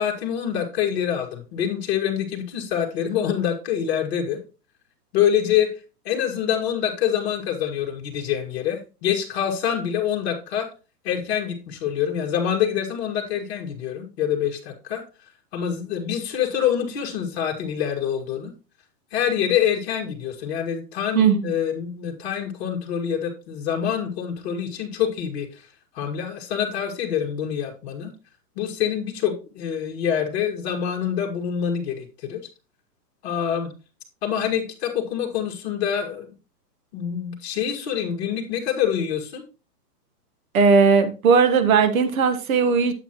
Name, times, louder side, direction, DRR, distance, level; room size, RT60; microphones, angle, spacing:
voice 1, 0.0-4.4 5.1-5.7 6.1-10.7 11.0-15.0 15.5-18.5 19.1-25.5 26.0-28.1 28.6-32.4 33.2-33.7 34.2-36.3 36.9-39.4, left 9 dB, 40° left, 1.9 m, -26 dB
voice 2, 21.1-21.5 40.5-42.9, right 5 dB, 60° right, 1.3 m, -18 dB
8.2 x 7.8 x 3.0 m
hypercardioid pair, 160°, 48 cm